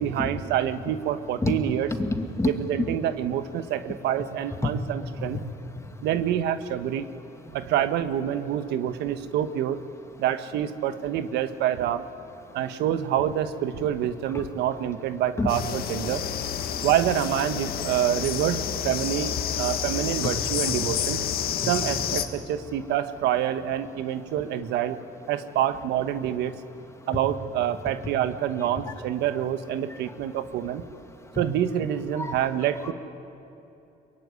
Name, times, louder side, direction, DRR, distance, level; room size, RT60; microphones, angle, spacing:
voice 1, 0.0-1.9 2.5-5.4 6.0-7.1 7.5-9.8 10.2-12.0 12.5-16.2 16.8-21.2 21.7-25.0 25.3-26.6 27.1-30.8 31.4-32.9, right 10 dB, 85° right, 10 dB, 1.3 m, -27 dB
voice 2, 2.0-2.5 4.6-4.7 5.2-5.4 14.3-14.5 15.4-15.5 21.6-21.7 31.4-31.5 32.2-32.3 32.8-32.9, left 3 dB, 15° left, 5 dB, 2.4 m, -27 dB
sound 1, 15.5-22.3, left 9 dB, 65° left, 1.8 m, -29 dB
23.5 x 23.0 x 9.6 m, 2.9 s
cardioid pair, 110°, 17 cm